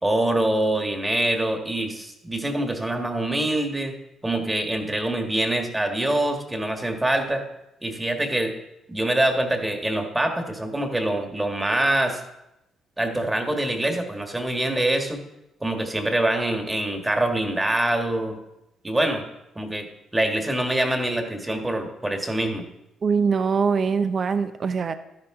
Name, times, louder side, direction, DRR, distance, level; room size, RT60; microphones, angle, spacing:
voice 1, 0.0-3.9 4.2-7.4 7.8-8.5 8.9-12.2 13.0-15.2 15.6-18.4 18.8-19.2 19.5-19.9 20.1-22.7, right 1 dB, 15° right, 4 dB, 1.6 m, -24 dB
voice 2, 23.0-25.0, right 5 dB, 45° right, 10 dB, 0.6 m, -22 dB
12.5 x 10.5 x 3.7 m, 0.89 s
cardioid pair, 90°, 0 cm